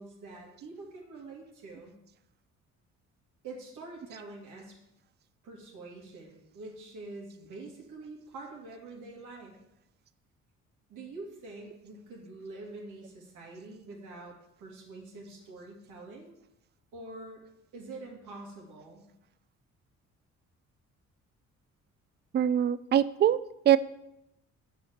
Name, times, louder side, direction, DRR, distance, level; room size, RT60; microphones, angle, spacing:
voice 1, 0.0-1.9 3.4-4.8 5.4-9.6 10.9-16.4 16.9-17.4 17.7-19.0, right 2 dB, 80° right, -1 dB, 2.3 m, -45 dB
voice 2, 22.3-23.4 23.7-23.8, right 10 dB, 35° right, 16 dB, 0.4 m, -23 dB
6.9 x 5.0 x 6.4 m, 0.84 s
cardioid pair, 90°, 30 cm